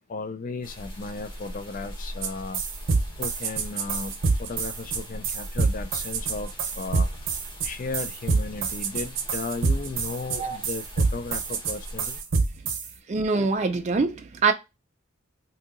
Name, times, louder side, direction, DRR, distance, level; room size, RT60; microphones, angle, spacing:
voice 1, 0.1-2.6 3.2-4.1 4.4-7.1 7.6-12.2, left 3 dB, 40° left, 0.4 m, -35 dB
sound 1, 0.6-12.2, equal, 25° left, 0.9 m, -41 dB
sound 2, 2.2-2.3 2.5-12.9, right 4 dB, 65° right, 0.7 m, -26 dB
voice 2, 13.1-14.5, right 4 dB, 35° right, 0.4 m, -24 dB
2.7 x 2.7 x 3.7 m
head